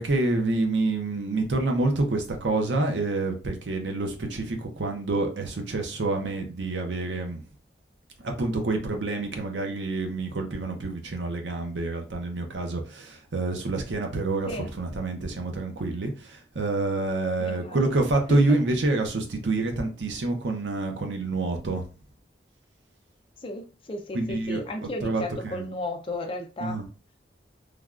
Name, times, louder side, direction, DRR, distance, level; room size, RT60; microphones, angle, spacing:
voice 1, 0.0-7.4 8.2-21.8 24.1-25.7 26.6-26.8, right 2 dB, 80° right, 0.6 m, -27 dB
voice 2, 17.4-17.8 18.3-18.4 23.4-26.8, left 2 dB, 30° left, 0.5 m, -34 dB
3.3 x 2.3 x 2.4 m
head